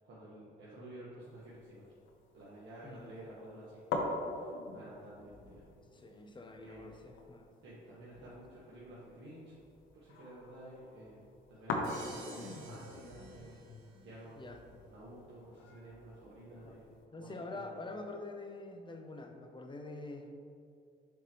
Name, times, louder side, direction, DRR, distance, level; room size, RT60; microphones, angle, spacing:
voice 1, 0.0-1.9 2.3-5.7 6.6-7.0 7.6-9.5 9.9-13.6 14.0-14.5 14.8-16.9 17.1-17.8, right 1 dB, 75° right, -8 dB, 1.3 m, -52 dB
sound 1, 1.2-17.0, left 3 dB, 80° left, 0.8 m, -44 dB
voice 2, 2.8-3.1 5.9-7.5 8.2-8.3 12.1-12.3 14.3-14.6 16.6-16.8 17.1-20.4, left 2 dB, 25° left, 5 dB, 0.6 m, -46 dB
Crash cymbal, 11.8-14.0, right 2 dB, 90° right, 0.9 m, -51 dB
6.8 x 4.6 x 3.1 m, 2.4 s
cardioid pair, 90°, 20 cm